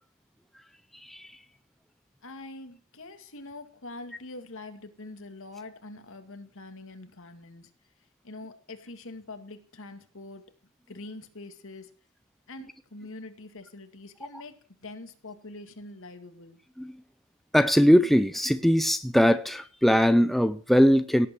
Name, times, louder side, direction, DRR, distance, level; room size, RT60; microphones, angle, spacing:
voice 1, 1.0-1.3 16.8-16.9 17.5-21.3, equal, ahead, 0.6 m, -21 dB
voice 2, 2.2-7.7 8.2-10.5 10.9-11.9 12.5-14.5 14.8-16.6, left 2 dB, 65° left, 2.3 m, -44 dB
17.5 x 8.6 x 6.2 m
head